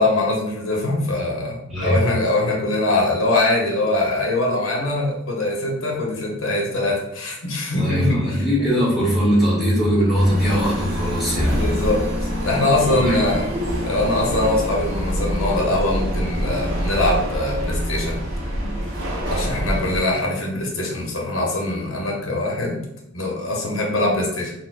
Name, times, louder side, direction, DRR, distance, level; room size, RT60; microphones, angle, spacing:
voice 1, 0.0-8.4 11.5-12.0 12.4-13.5 13.8-18.2 19.3-22.8 23.1-24.5, left 2 dB, 90° left, -1 dB, 0.9 m, -22 dB
voice 2, 1.7-2.0 7.7-11.5 12.9-13.4, equal, ahead, -7 dB, 1.0 m, -20 dB
sound 1, 10.1-20.0, equal, 55° right, 1.0 m, -25 dB
4.1 x 2.1 x 2.4 m, 0.81 s
head